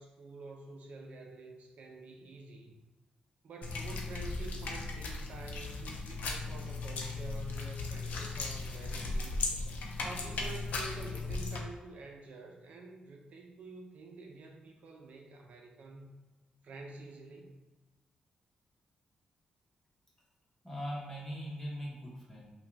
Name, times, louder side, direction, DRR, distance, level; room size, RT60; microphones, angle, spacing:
voice 1, 0.0-2.7 3.4-9.4 10.0-16.2 16.6-17.6, right 3 dB, 65° right, 1 dB, 0.6 m, -48 dB
sound 1, 3.6-11.6, left 3 dB, 85° left, 0.6 m, -37 dB
voice 2, 20.6-22.5, equal, 10° left, -5 dB, 1.2 m, -40 dB
5.6 x 2.3 x 3.4 m, 1.2 s
wide cardioid pair, 150°, 3 cm